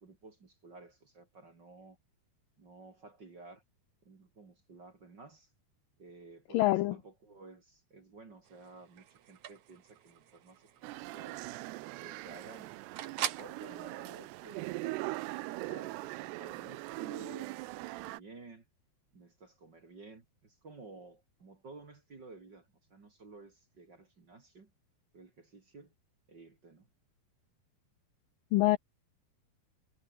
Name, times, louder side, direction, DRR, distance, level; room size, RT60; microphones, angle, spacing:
voice 1, 0.0-2.0 2.6-3.6 4.0-5.5 6.0-11.4 12.0-12.8 13.0-15.1 15.5-18.6 19.1-24.7 25.1-25.9 26.3-26.9, right 3 dB, 30° right, 2.4 m, -53 dB
voice 2, 6.5-7.0 28.5-28.8, left 17 dB, 85° left, 2.0 m, -25 dB
sound 1, 8.5-13.6, right 11 dB, 60° right, 2.2 m, -44 dB
sound 2, 10.8-18.2, right 20 dB, 85° right, 2.7 m, -41 dB
omnidirectional pair, 4.8 m